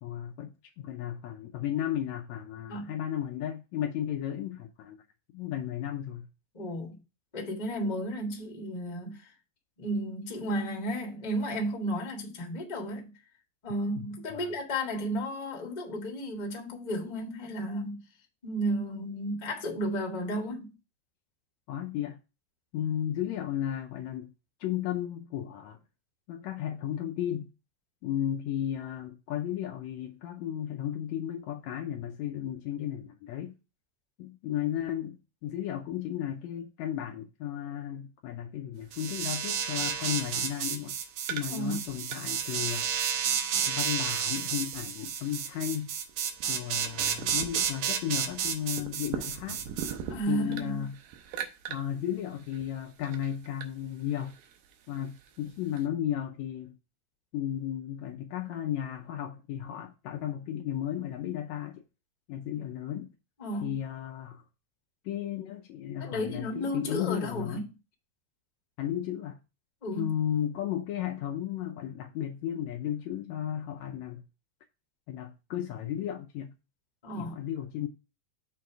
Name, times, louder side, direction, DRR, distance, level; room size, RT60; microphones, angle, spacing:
voice 1, 0.0-5.0 5.3-6.3 14.3-14.5 21.7-22.2 22.7-24.3 24.6-25.8 26.3-27.5 28.0-33.6 34.2-41.0 41.3-42.9 43.7-45.9 46.5-49.6 50.3-51.0 51.7-54.4 54.9-56.8 57.3-61.8 62.3-63.1 63.6-64.4 65.0-67.6 68.8-69.4 70.0-74.2 75.1-76.5 77.2-77.9, left 10 dB, 75° left, 1.7 m, -34 dB
voice 2, 6.5-7.0 7.3-9.3 9.8-13.1 13.6-18.0 18.4-20.7 41.5-41.8 50.1-50.9 63.4-63.7 66.0-67.6 69.8-70.1 77.0-77.4, equal, 25° left, 0.8 m, -33 dB
sound 1, 38.8-55.9, right 8 dB, 90° right, 2.4 m, -45 dB
sound 2, 38.9-49.9, right 8 dB, 75° right, 2.2 m, -31 dB
6.6 x 3.4 x 5.8 m
omnidirectional pair, 3.6 m